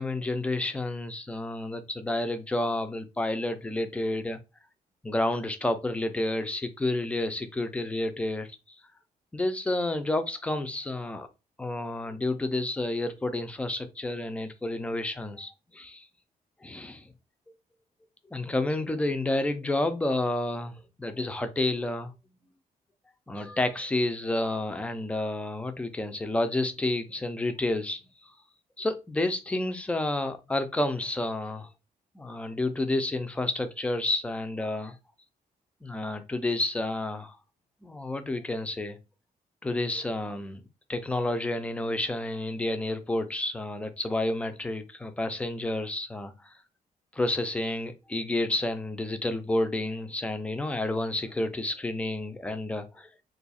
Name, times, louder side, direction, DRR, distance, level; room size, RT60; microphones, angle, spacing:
voice 1, 0.0-4.4 5.0-8.5 9.3-11.3 11.6-16.1 16.6-17.1 18.3-22.1 23.3-28.0 28.8-31.7 32.2-34.9 35.8-37.4 37.8-39.0 39.6-40.6 40.9-46.5 47.1-53.1, left 2 dB, 10° left, 0.3 m, -30 dB
2.7 x 2.3 x 4.0 m
wide cardioid pair, 180°, 14 cm